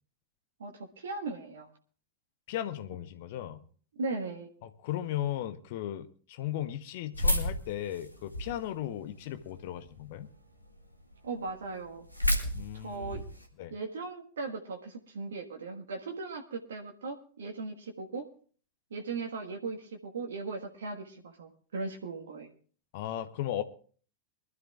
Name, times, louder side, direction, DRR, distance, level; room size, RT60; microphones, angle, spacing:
voice 1, 0.6-1.7 3.9-4.5 11.2-12.0 12.7-13.2 13.7-18.2 18.9-22.5, right 3 dB, 65° right, 1.5 m, -38 dB
voice 2, 2.5-3.6 4.6-10.3 12.5-13.2 13.6-13.7 22.9-23.6, left 12 dB, 50° left, 0.9 m, -36 dB
sound 1, 7.1-8.7 9.2-9.9 10.4-10.5 10.7-10.8 11.1-11.2 11.4-13.5, left 1 dB, 90° left, 2.1 m, -31 dB
24.0 x 13.0 x 2.4 m
figure-of-eight pair, 90°, 0 cm